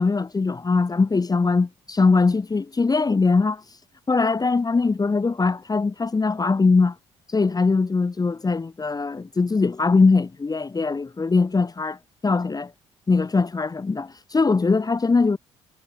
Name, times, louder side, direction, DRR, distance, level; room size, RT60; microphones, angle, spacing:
voice 1, 0.0-3.6 4.1-6.9 7.3-12.0 12.2-12.7 13.1-15.4, left 4 dB, 25° left, 1.4 m, -21 dB
hypercardioid pair, 55°, 15 cm